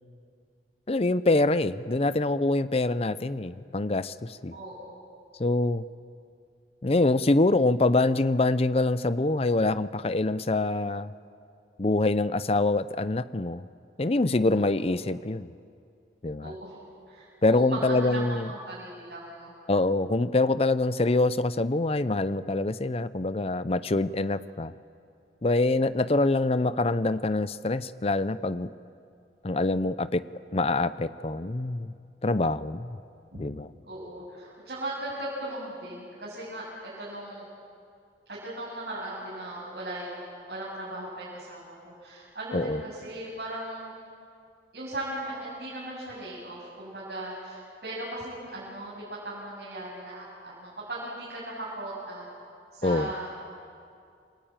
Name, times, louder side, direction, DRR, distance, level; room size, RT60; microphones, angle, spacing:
voice 1, 0.9-4.5 5.4-5.8 6.8-11.1 11.8-13.6 14.0-15.5 16.2-16.5 17.4-18.5 19.7-24.7 25.4-28.7 29.4-30.2 30.5-31.9 32.2-33.0 33.3-33.7 42.5-42.8 52.8-53.1, left 2 dB, 35° left, 15 dB, 0.6 m, -25 dB
voice 2, 4.5-5.0 14.4-14.6 16.4-16.8 17.1-19.5 33.9-37.5 38.3-43.9 44.7-52.3 52.7-53.4, right 1 dB, 60° right, -7 dB, 7.6 m, -38 dB
28.5 x 21.5 x 8.9 m, 2.4 s
head